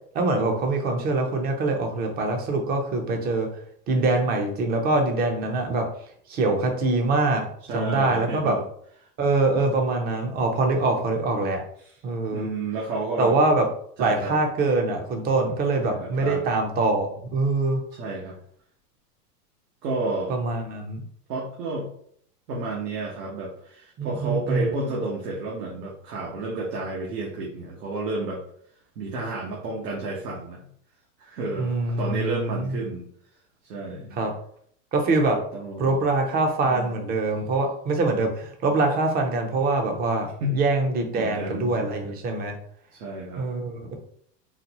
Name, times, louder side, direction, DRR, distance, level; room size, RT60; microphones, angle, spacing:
voice 1, 0.1-3.5 3.9-5.9 6.3-7.5 7.7-8.6 9.2-11.6 12.0-12.5 13.2-13.7 14.0-17.8 20.3-21.0 24.0-24.7 31.6-32.9 34.2-34.3 34.9-35.4 35.8-42.6 43.4-43.9, right 3 dB, 20° right, 4 dB, 0.5 m, -24 dB
voice 2, 7.7-8.6 9.6-9.7 11.8-11.9 12.3-13.4 14.0-14.4 15.8-16.4 17.9-18.4 19.8-20.3 21.3-21.9 22.5-28.4 29.0-30.7 31.2-33.1 33.6-34.2 35.5-36.0 36.6-37.1 40.4-40.6 41.1-41.7 42.9-43.4, right 2 dB, 80° right, -3 dB, 1.1 m, -31 dB
4.0 x 2.2 x 2.9 m, 0.63 s
supercardioid pair, 130°, 48 cm